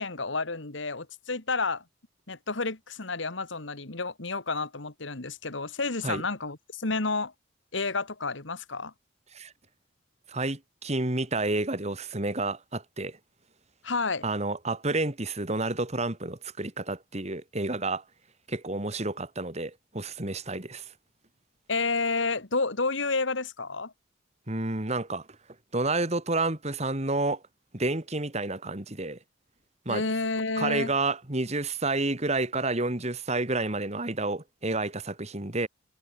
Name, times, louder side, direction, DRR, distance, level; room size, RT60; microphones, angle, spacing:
voice 1, 0.0-1.8 2.3-7.3 7.7-8.9 13.8-14.2 21.7-23.9 29.9-30.9, left 3 dB, 70° left, 2.1 m, -30 dB
voice 2, 10.3-13.2 14.2-18.0 18.5-20.9 24.5-25.3 25.7-27.4 27.7-29.2 29.9-30.0 30.6-35.7, right 2 dB, 35° right, 2.2 m, -30 dB
head